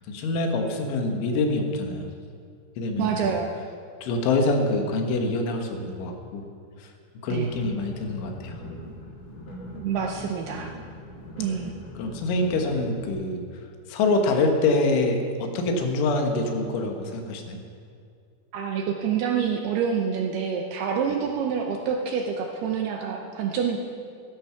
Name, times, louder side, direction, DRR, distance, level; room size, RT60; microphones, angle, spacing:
voice 1, 0.1-2.1 2.8-3.3 4.0-6.5 6.8-6.9 7.2-8.6 11.5-17.6, left 2 dB, 80° left, 3 dB, 3.8 m, -26 dB
voice 2, 3.0-3.5 7.3-7.5 9.8-10.7 11.4-11.7 18.5-23.8, right 7 dB, 75° right, 2 dB, 2.5 m, -27 dB
sound 1, 7.4-13.1, equal, 45° left, 1.6 m, -41 dB
14.5 x 13.0 x 5.9 m, 2.3 s
omnidirectional pair, 5.5 m